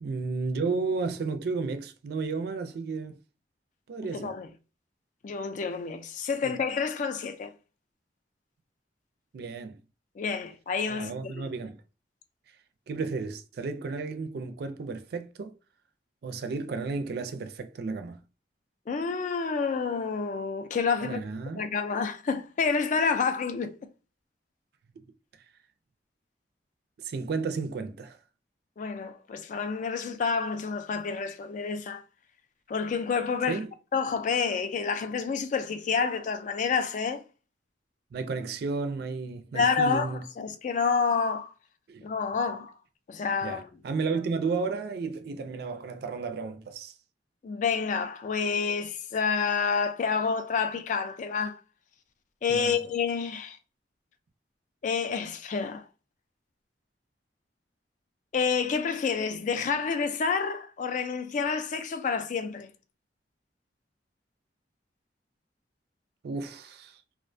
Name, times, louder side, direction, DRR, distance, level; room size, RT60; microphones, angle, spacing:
voice 1, 0.0-3.1 3.9-4.3 6.4-6.5 9.3-9.8 10.9-11.8 12.9-15.5 16.2-18.2 21.0-21.7 27.0-28.2 33.5-33.7 38.1-40.2 41.9-42.1 43.4-46.9 52.5-52.8 66.2-67.0, right 4 dB, 60° right, 0.4 m, -33 dB
voice 2, 4.0-4.5 5.2-7.5 10.2-11.5 18.9-21.2 21.6-23.7 28.8-32.0 32.7-33.6 33.9-37.2 39.5-41.5 42.0-42.7 43.1-43.7 47.4-51.6 52.4-53.6 54.8-55.8 58.3-62.7, left 5 dB, 45° left, 0.3 m, -29 dB
2.4 x 2.1 x 2.5 m
head